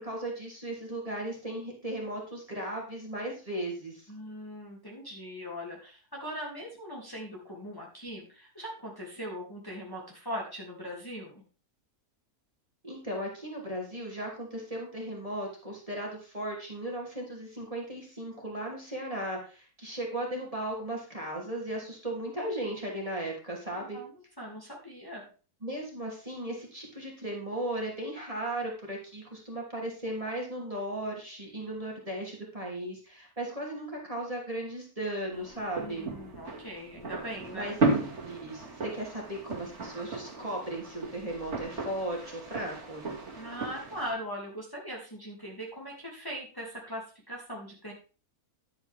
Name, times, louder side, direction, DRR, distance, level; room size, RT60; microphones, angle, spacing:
voice 1, 0.0-4.1 12.8-24.0 25.6-36.1 37.5-43.0, right 1 dB, 20° right, -2 dB, 3.1 m, -36 dB
voice 2, 4.1-11.4 23.8-25.3 35.8-37.8 43.3-47.9, equal, 15° left, -2 dB, 2.7 m, -40 dB
sound 1, 35.3-44.1, right 3 dB, 50° right, 2.5 m, -35 dB
11.0 x 8.9 x 3.6 m, 0.36 s
omnidirectional pair, 1.6 m